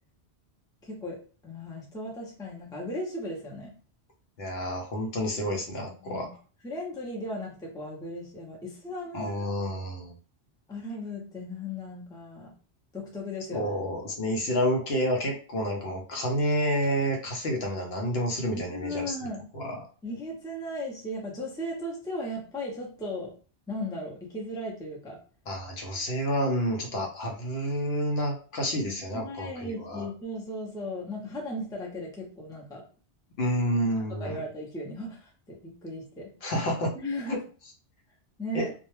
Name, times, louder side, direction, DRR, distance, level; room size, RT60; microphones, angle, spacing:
voice 1, 0.8-1.2 1.4-3.7 6.0-6.3 6.6-9.5 10.7-12.5 12.9-13.7 18.5-19.5 20.0-23.3 23.7-25.2 28.8-32.8 34.2-36.3 36.9-37.4 38.4-38.7, left 1 dB, 5° left, -2 dB, 0.5 m, -36 dB
voice 2, 4.4-6.3 9.1-10.1 13.5-19.8 25.5-30.1 33.4-34.4 36.4-36.9 37.3-37.4 38.5-38.7, equal, 65° left, 1 dB, 0.8 m, -29 dB
2.3 x 2.1 x 3.0 m, 0.39 s
omnidirectional pair, 1.2 m